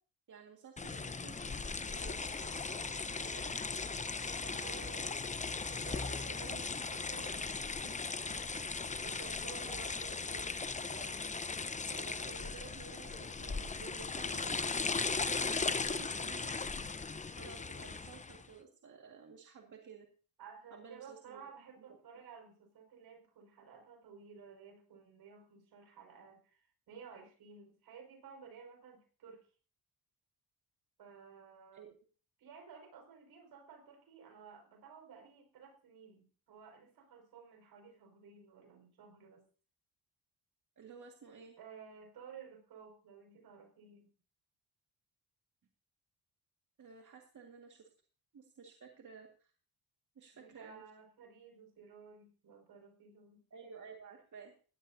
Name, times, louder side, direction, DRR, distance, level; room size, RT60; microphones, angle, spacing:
voice 1, 0.3-3.6 4.4-5.0 6.3-6.6 9.2-10.4 10.7-11.5 11.8-20.1 20.7-21.4 31.7-32.0 40.8-41.6 46.8-47.9 48.3-49.5 50.2-50.8 53.5-54.5, right 6 dB, 50° right, 2 dB, 2.0 m, -54 dB
sound 1, 0.8-18.5, left 4 dB, 20° left, 0.8 m, -38 dB
voice 2, 4.2-5.3 5.7-8.0 9.0-10.2 20.4-29.5 31.0-31.9 32.4-39.4 41.6-44.1 50.3-53.4, right 6 dB, 75° right, 4 dB, 5.6 m, -54 dB
17.0 x 13.0 x 2.8 m, 0.39 s
cardioid pair, 80°, 38 cm